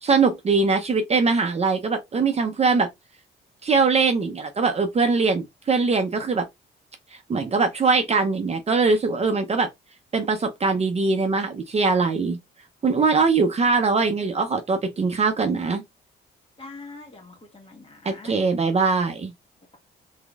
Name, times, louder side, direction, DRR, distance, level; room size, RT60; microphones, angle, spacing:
voice 1, 0.0-2.9 3.6-6.4 7.3-9.7 10.1-12.4 12.8-15.8 18.0-19.3, right 4 dB, 30° right, 0.6 m, -22 dB
voice 2, 16.6-18.4, left 3 dB, 30° left, 1.5 m, -43 dB
3.6 x 3.5 x 2.4 m
cardioid pair, 90°, 20 cm